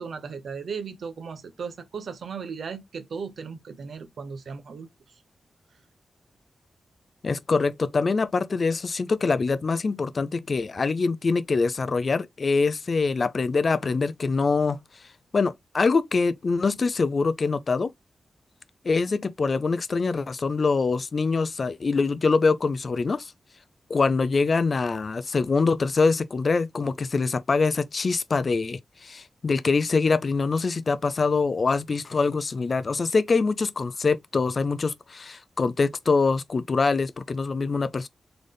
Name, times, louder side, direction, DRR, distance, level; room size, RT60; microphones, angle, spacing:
voice 1, 0.0-4.9, right 5 dB, 70° right, 1.0 m, -36 dB
voice 2, 7.2-14.8 15.3-17.9 18.8-23.3 23.9-38.1, left 4 dB, 40° left, 0.4 m, -24 dB
3.9 x 3.4 x 3.7 m
wide cardioid pair, 155°, 0 cm